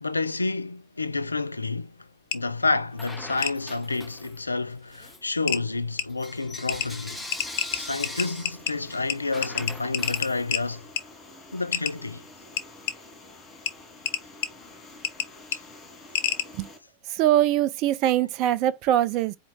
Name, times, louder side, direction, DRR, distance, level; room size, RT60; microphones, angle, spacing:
voice 1, 0.0-7.3 7.7-10.9 11.5-12.2 15.5-15.6 16.2-16.3, left 3 dB, 80° left, 0.3 m, -29 dB
sound 1, 2.3-2.4 3.4-3.5 4.9-5.0 5.5-5.6 6.0-6.1 6.7-6.9 7.3-8.7 9.1-9.2 9.4-10.6 11.0-11.1 11.7-11.9 12.6-12.9 13.7-13.8 14.0-14.5 15.0-15.3 15.5-15.6 16.1-16.4, left 10 dB, 50° left, 0.7 m, -27 dB
Bell / Coin (dropping), 2.9-4.5 4.9-10.9, left 2 dB, 5° left, 1.0 m, -41 dB
sound 2, 7.3-16.8, left 2 dB, 25° left, 1.8 m, -48 dB
voice 2, 17.1-19.4, right 12 dB, 40° right, 0.5 m, -22 dB
4.4 x 2.6 x 3.8 m
figure-of-eight pair, 90°, 0 cm